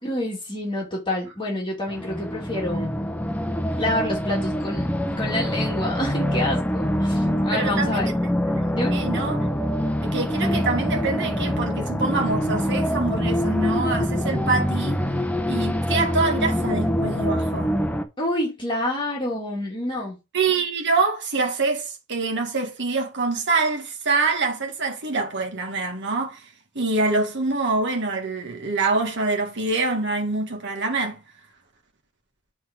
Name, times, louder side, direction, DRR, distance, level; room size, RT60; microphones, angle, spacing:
voice 1, 0.0-2.9 3.8-8.1 8.7-8.9 18.2-20.2, left 1 dB, 20° left, 2.3 m, -28 dB
sound 1, 1.9-18.0, equal, 5° left, 0.6 m, -25 dB
voice 2, 7.5-8.1 8.5-9.5 10.0-15.0 15.5-17.7 20.3-26.5 26.8-31.2, right 3 dB, 55° right, 1.7 m, -25 dB
8.3 x 3.5 x 5.1 m
head